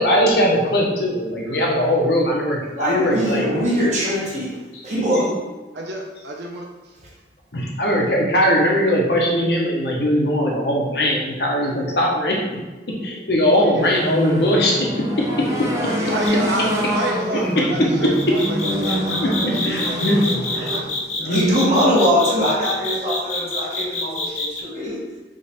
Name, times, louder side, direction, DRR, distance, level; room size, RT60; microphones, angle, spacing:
voice 1, 0.0-3.5 4.7-4.8 7.5-12.6 12.9-15.5 17.3-17.7 19.2-20.7 21.2-21.4, equal, 65° left, -2 dB, 1.0 m, -20 dB
voice 2, 2.7-4.4 4.8-5.3 21.3-25.2, equal, 40° right, -5 dB, 1.2 m, -21 dB
voice 3, 5.7-7.0 13.5-13.9 15.4-21.8 23.0-23.1 24.2-24.6, right 1 dB, 75° right, 0 dB, 0.8 m, -31 dB
sound 1, 13.8-20.8, equal, 15° right, 0.6 m, -26 dB
sound 2, 16.2-16.5 18.1-24.6, left 2 dB, 40° left, 0.5 m, -27 dB
3.8 x 3.2 x 4.2 m, 1.2 s
head